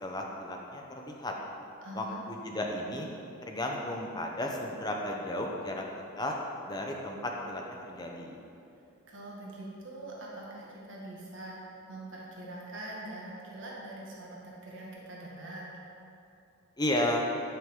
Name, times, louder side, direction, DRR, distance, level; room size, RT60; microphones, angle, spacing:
voice 1, 0.0-1.3 1.9-3.1 3.5-5.8 6.2-6.4 6.7-8.4 16.8-17.3, left 1 dB, 20° left, 0 dB, 0.7 m, -33 dB
voice 2, 1.8-2.2 9.1-11.6 11.9-15.6, right 1 dB, 60° right, -4 dB, 1.7 m, -43 dB
10.5 x 5.9 x 3.7 m, 2.7 s
head